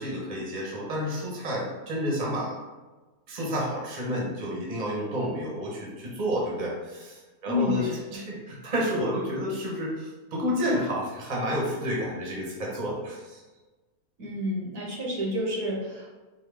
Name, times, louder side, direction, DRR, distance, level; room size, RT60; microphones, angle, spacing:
voice 1, 0.0-2.6 3.3-13.4, equal, 35° right, -3 dB, 1.0 m, -30 dB
voice 2, 7.4-8.0 14.2-16.2, left 2 dB, 75° right, -2 dB, 1.5 m, -30 dB
4.6 x 2.7 x 3.4 m, 1.2 s
omnidirectional pair, 1.7 m